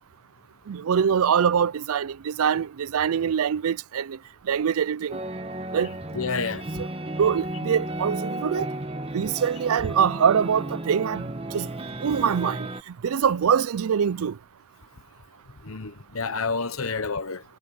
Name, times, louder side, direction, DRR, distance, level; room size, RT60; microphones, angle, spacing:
voice 1, 0.7-4.2 4.5-5.2 5.7-5.9 7.2-8.7 9.1-11.3 11.5-11.7 12.0-12.7 13.0-14.4, right 7 dB, 75° right, 0.4 m, -23 dB
sound 1, 5.1-12.8, right 1 dB, 25° right, 1.4 m, -33 dB
voice 2, 6.1-6.8 15.6-17.4, left 4 dB, 65° left, 1.1 m, -29 dB
head